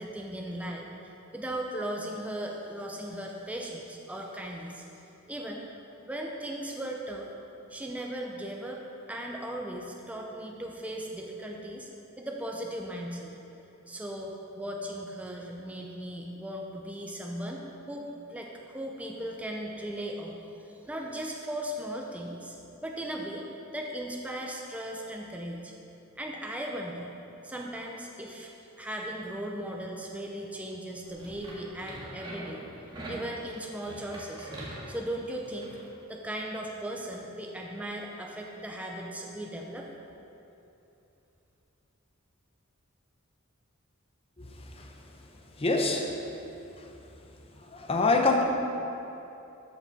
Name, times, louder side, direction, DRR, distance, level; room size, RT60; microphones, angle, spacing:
voice 1, 0.0-4.8 5.3-5.7 6.1-8.8 9.1-11.9 12.2-13.3 13.9-17.6 17.9-20.4 20.7-22.6 22.8-23.5 23.7-25.7 26.2-27.1 27.4-28.5 28.8-32.6 33.1-34.5 34.9-35.8 36.1-39.9, right 1 dB, 5° right, 0 dB, 0.6 m, -37 dB
sound 1, 31.0-35.8, right 1 dB, 20° right, 1.8 m, -43 dB
voice 2, 45.6-46.1 47.7-48.4, left 3 dB, 30° left, 3 dB, 0.8 m, -25 dB
13.0 x 5.9 x 4.1 m, 2.9 s
head